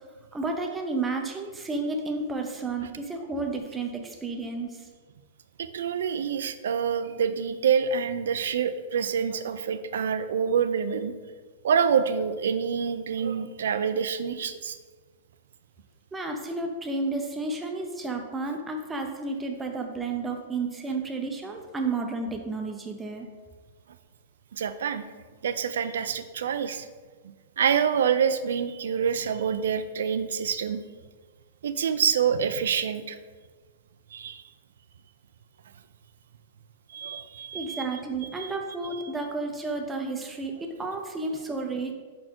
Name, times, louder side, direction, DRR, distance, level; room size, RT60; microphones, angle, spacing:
voice 1, 0.3-4.9 16.1-23.3 37.5-41.9, right 3 dB, 10° right, 2 dB, 0.5 m, -32 dB
voice 2, 5.6-11.1 11.6-14.8 24.5-25.0 25.4-26.9 27.6-30.8 31.6-33.2 34.1-34.4 36.9-37.8 38.4-38.5, right 7 dB, 85° right, 11 dB, 0.4 m, -26 dB
5.0 x 4.3 x 4.4 m, 1.4 s
supercardioid pair, 170°, 0 cm